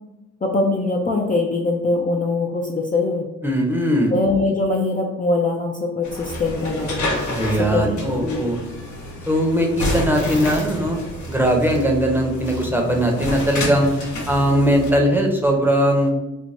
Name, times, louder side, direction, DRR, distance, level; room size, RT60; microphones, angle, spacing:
voice 1, 0.4-3.3 4.1-7.0 7.7-8.5, left 2 dB, 30° left, 0 dB, 0.4 m, -22 dB
voice 2, 3.4-4.1 7.3-8.6 9.3-11.0 11.3-13.9 14.3-16.1, equal, 5° right, 1 dB, 0.7 m, -19 dB
sound 1, 6.0-14.9, left 1 dB, 70° left, 0.8 m, -29 dB
3.3 x 2.1 x 2.5 m, 1.0 s
supercardioid pair, 55°, 30 cm